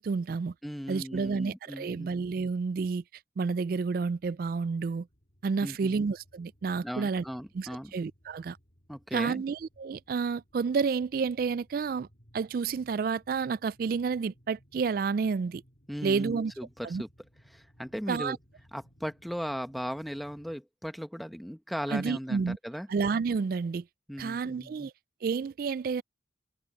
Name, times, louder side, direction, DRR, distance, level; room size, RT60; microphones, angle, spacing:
voice 1, 0.0-0.5 0.9-3.0 3.4-5.1 5.4-7.2 7.5-8.6 9.1-12.1 12.3-15.6 16.0-16.5 16.8-17.0 18.1-18.4 21.9-22.6 22.9-23.8 24.2-24.9 25.2-26.0, right 5 dB, 50° right, 0.3 m, -30 dB
voice 2, 0.6-2.1 5.6-6.0 6.8-7.9 8.9-9.4 15.9-17.1 17.5-18.4 18.7-22.9 24.1-24.9, equal, ahead, 0.9 m, -37 dB
sound 1, 3.7-20.6, equal, 50° left, 3.0 m, -62 dB
head